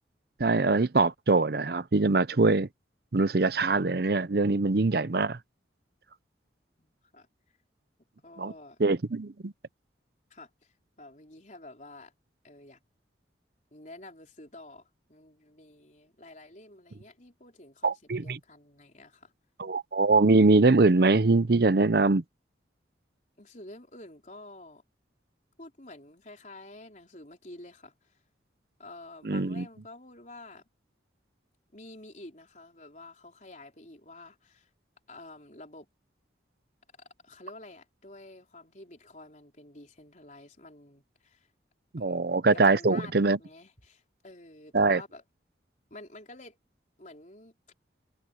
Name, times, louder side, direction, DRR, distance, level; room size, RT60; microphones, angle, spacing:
voice 1, 0.4-2.7 3.1-5.4 8.4-8.5 8.8-9.5 17.8-18.4 19.6-22.2 29.2-29.6 41.9-43.4 44.7-45.0, right 3 dB, 55° right, 0.7 m, -23 dB
voice 2, 6.8-7.3 8.2-8.8 10.3-12.1 12.4-12.8 13.7-19.3 23.4-24.8 25.6-28.2 28.8-30.6 31.7-34.7 35.1-35.9 37.0-41.5 42.0-42.3 42.5-45.2 45.9-46.6 47.0-47.5, left 2 dB, 40° left, 4.2 m, -49 dB
head